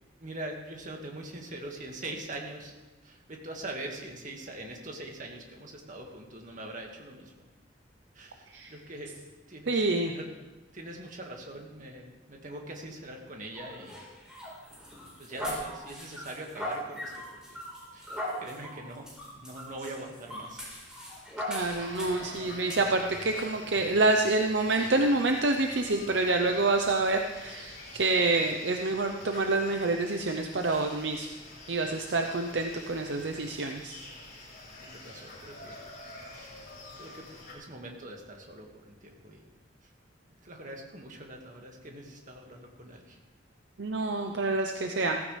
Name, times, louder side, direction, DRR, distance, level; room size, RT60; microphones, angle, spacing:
voice 1, 0.2-2.7 3.0-7.3 8.1-9.1 9.5-10.3 10.7-14.0 15.0-17.6 17.9-20.6 22.2-22.8 34.8-35.7 36.4-36.5 37.0-37.3 37.5-39.4 40.4-43.2, right 1 dB, 45° right, 1 dB, 2.0 m, -43 dB
voice 2, 9.7-10.1 21.5-31.3 31.7-34.0 43.8-45.2, right 2 dB, 65° right, 4 dB, 0.8 m, -27 dB
sound 1, 13.6-22.3 22.7-22.8 23.3-23.5, equal, 5° right, 4.2 m, -39 dB
sound 2, 21.5-37.5, left 2 dB, 55° left, 4.6 m, -47 dB
15.5 x 15.0 x 3.4 m, 1.1 s
head